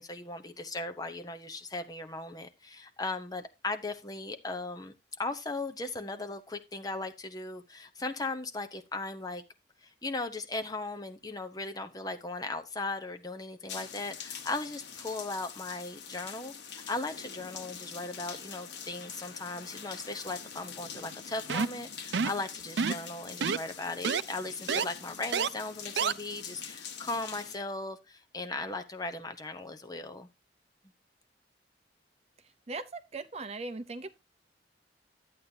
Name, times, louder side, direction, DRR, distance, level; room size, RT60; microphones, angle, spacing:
voice 1, 0.0-4.9 5.2-9.4 10.0-30.3, left 2 dB, 20° left, 0.9 m, -37 dB
sound 1, 13.7-27.6, left 7 dB, 80° left, 1.3 m, -45 dB
sound 2, 21.5-21.8 22.1-22.4 22.8-23.1 23.4-23.6 24.0-24.2 24.7-24.8 25.3-25.5 26.0-26.1, right 6 dB, 75° right, 0.5 m, -28 dB
voice 2, 32.7-34.1, right 3 dB, 35° right, 0.6 m, -39 dB
11.5 x 8.5 x 2.8 m
head